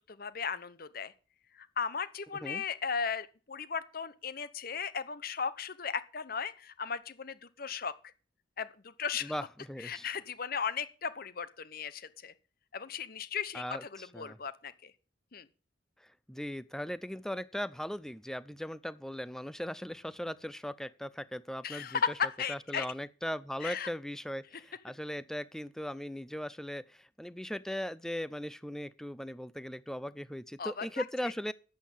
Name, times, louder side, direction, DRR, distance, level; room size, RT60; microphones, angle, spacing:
voice 1, 0.1-1.1 1.6-7.9 8.6-9.3 9.8-12.3 12.7-14.9 15.3-15.5 21.6-22.1 22.4-22.9 23.6-23.9 30.6-31.0, left 6 dB, 50° left, 0.9 m, -36 dB
voice 2, 9.2-10.1 13.5-14.4 16.3-22.0 22.5-31.5, equal, 5° left, 0.5 m, -39 dB
10.5 x 8.2 x 7.3 m
head